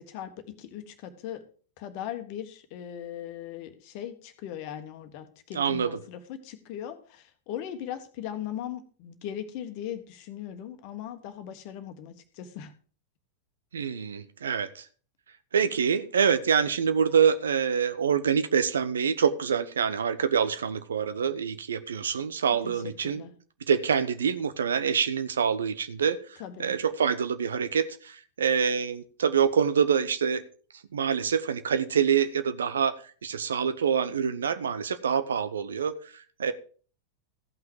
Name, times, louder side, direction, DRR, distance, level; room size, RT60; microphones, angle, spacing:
voice 1, 0.0-1.4 1.8-12.7 22.6-23.3 26.4-26.7, left 10 dB, 45° left, 8 dB, 1.4 m, -39 dB
voice 2, 5.5-6.0 13.7-14.9 15.5-23.2 23.7-26.2 26.6-30.4 30.9-33.0 33.2-36.5, right 7 dB, 65° right, 12 dB, 0.8 m, -26 dB
15.0 x 5.9 x 4.8 m, 0.41 s
figure-of-eight pair, 90°, 0 cm